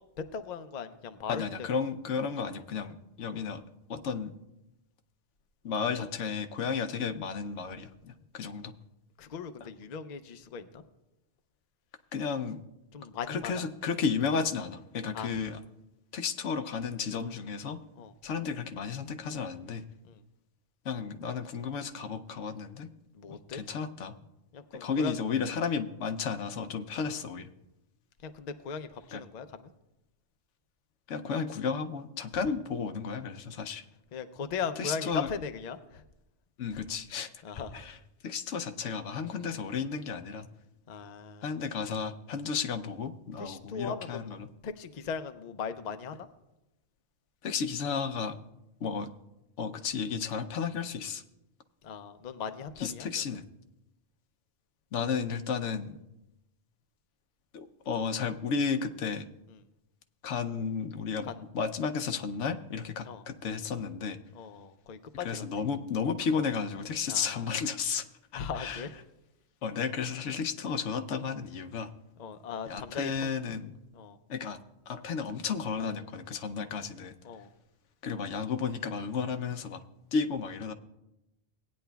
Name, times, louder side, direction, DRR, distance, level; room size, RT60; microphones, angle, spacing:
voice 1, 0.0-1.6 3.3-3.5 6.0-6.1 9.2-10.8 12.9-13.6 15.1-15.4 17.9-18.1 20.0-20.2 23.1-23.6 24.5-25.2 26.9-27.2 28.2-29.7 32.4-32.5 34.1-36.0 36.7-36.8 37.4-37.8 40.9-41.5 43.4-44.4 44.6-46.3 51.8-53.2 59.5-59.6 61.2-61.4 63.0-63.2 64.3-65.6 67.1-67.5 68.3-69.0 72.2-73.3 73.9-74.2 76.6-76.7 77.2-77.5, left 6 dB, 50° left, 9 dB, 0.6 m, -39 dB
voice 2, 1.3-3.6 3.9-4.4 5.6-8.7 12.1-12.6 13.3-15.6 16.1-17.8 18.2-19.8 20.8-22.9 23.3-24.1 24.8-27.5 29.1-29.2 31.1-33.8 34.8-35.3 36.6-37.3 37.7-38.0 38.2-40.5 41.4-44.5 47.4-48.4 48.8-49.1 49.6-51.2 52.8-53.4 54.9-56.0 57.5-59.3 60.2-64.2 65.2-68.0 68.3-68.8 69.6-71.9 72.7-73.7 74.3-74.6 74.9-77.1 78.0-79.8 80.1-80.7, left 6 dB, 90° left, 9 dB, 1.0 m, -33 dB
18.0 x 9.4 x 2.3 m, 0.93 s
omnidirectional pair, 1.2 m